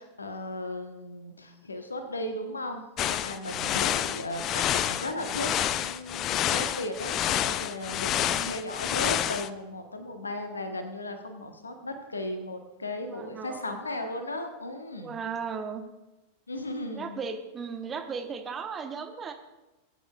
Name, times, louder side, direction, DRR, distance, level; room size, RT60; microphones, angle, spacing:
voice 1, 0.0-15.2 16.5-17.2, left 1 dB, 75° left, 7 dB, 1.1 m, -36 dB
sound 1, 3.0-9.5, left 11 dB, 35° left, 0.4 m, -28 dB
voice 2, 3.6-4.1 8.2-8.5 13.1-13.8 15.0-15.8 16.9-19.3, right 6 dB, 20° right, 6 dB, 1.0 m, -36 dB
20.0 x 9.2 x 2.3 m, 1.1 s
figure-of-eight pair, 90°, 0 cm